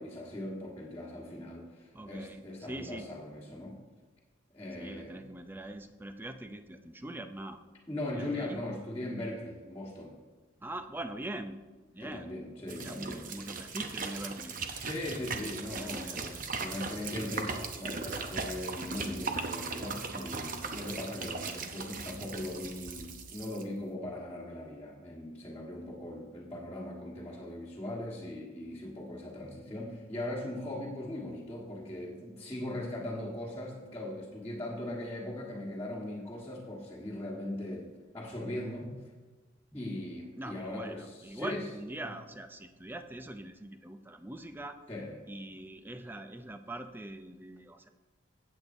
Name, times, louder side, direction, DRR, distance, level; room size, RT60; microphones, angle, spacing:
voice 1, 0.0-3.7 4.5-5.2 7.9-10.2 12.0-13.3 14.8-37.9 38.1-38.9 39.7-41.7 42.0-42.1 44.9-45.2, left 1 dB, 15° left, -10 dB, 1.5 m, -39 dB
voice 2, 1.9-3.1 4.7-7.6 8.1-8.6 10.6-11.6 11.9-12.3 12.8-14.6 15.1-16.2 40.4-44.8 45.3-47.9, right 1 dB, 10° right, 8 dB, 0.4 m, -43 dB
sound 1, 12.7-23.6, right 4 dB, 40° right, 0.8 m, -38 dB
15.5 x 8.3 x 2.7 m, 1.3 s
head